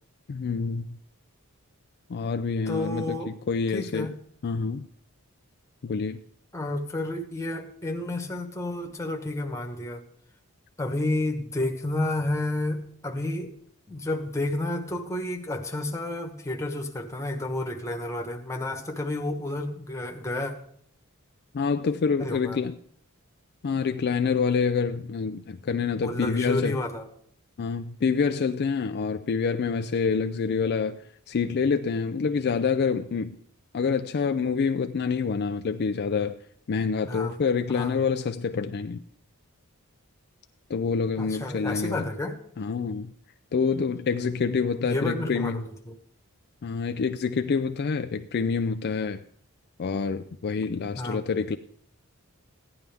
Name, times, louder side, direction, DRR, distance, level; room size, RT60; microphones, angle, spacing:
voice 1, 0.3-1.0 2.1-4.1 4.4-4.9 5.8-6.2 21.5-22.8 23.6-26.8 27.6-33.4 33.7-36.4 36.7-39.0 40.7-42.1 42.6-43.1 43.5-45.7 46.6-49.2 49.8-51.6, left 5 dB, 45° left, 0.4 m, -27 dB
voice 2, 2.7-3.3 3.7-4.2 6.5-10.0 10.8-13.5 13.9-20.5 22.2-22.6 26.0-27.1 37.1-37.4 37.7-38.0 41.2-42.4 44.8-46.0 51.0-51.2, left 1 dB, 15° left, 1.2 m, -31 dB
15.5 x 10.5 x 3.5 m
head